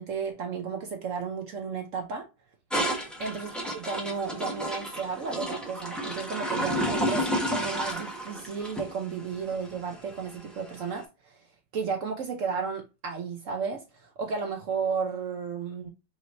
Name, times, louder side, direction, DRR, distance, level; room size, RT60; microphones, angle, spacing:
voice 1, 0.0-2.3 3.2-11.3 11.7-15.9, right 5 dB, 65° right, 0.7 m, -33 dB
sound 1, 2.7-10.9, equal, ahead, 0.6 m, -32 dB
5.4 x 3.1 x 2.5 m
omnidirectional pair, 2.1 m